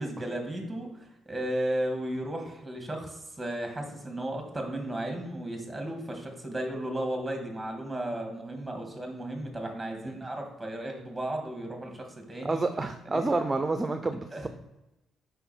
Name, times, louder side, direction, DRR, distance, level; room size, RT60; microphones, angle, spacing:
voice 1, 0.0-12.6 13.1-13.2 14.3-14.5, right 1 dB, 10° right, 2 dB, 2.2 m, -34 dB
voice 2, 12.4-14.5, right 3 dB, 25° right, 9 dB, 0.6 m, -29 dB
5.5 x 5.5 x 4.5 m, 0.98 s
supercardioid pair, 60°, 0 cm